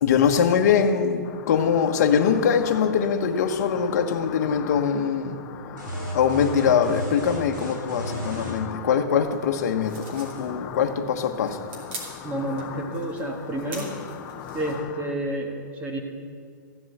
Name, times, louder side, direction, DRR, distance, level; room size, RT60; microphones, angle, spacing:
voice 1, 0.0-5.4 6.1-11.7, left 7 dB, 55° left, 5 dB, 1.2 m, -22 dB
sound 1, 1.2-15.1, left 9 dB, 25° left, 0.6 m, -40 dB
sound 2, 5.8-8.6, equal, 75° right, 4.4 m, -34 dB
sound 3, 9.8-14.8, right 2 dB, 35° right, 3.0 m, -43 dB
voice 2, 12.2-13.9 14.5-16.0, right 1 dB, 15° right, 2 dB, 1.5 m, -30 dB
15.0 x 7.8 x 7.9 m, 2.1 s
hypercardioid pair, 165°, 11 cm